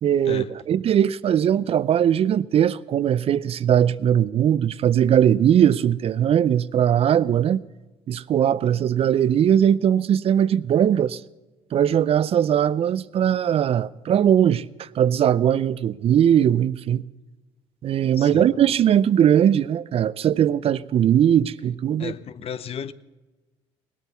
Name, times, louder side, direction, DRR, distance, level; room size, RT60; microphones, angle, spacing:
voice 1, 0.0-7.7 8.1-11.2 11.7-17.0 17.8-22.1, right 9 dB, 50° right, 0.4 m, -20 dB
voice 2, 18.2-18.5 22.0-22.9, left 8 dB, 50° left, 0.7 m, -33 dB
18.0 x 8.4 x 6.7 m
supercardioid pair, 65°, 13 cm